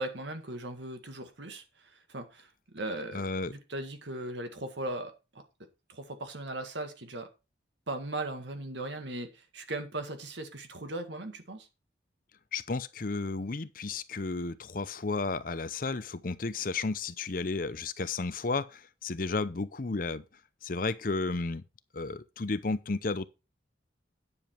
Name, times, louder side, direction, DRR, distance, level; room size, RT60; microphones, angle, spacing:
voice 1, 0.0-5.4 5.9-7.3 7.9-11.7, right 2 dB, 70° right, 1.9 m, -38 dB
voice 2, 3.1-3.5 12.5-20.2 20.6-21.6 21.9-23.3, left 3 dB, 45° left, 0.6 m, -33 dB
9.8 x 7.1 x 4.5 m
head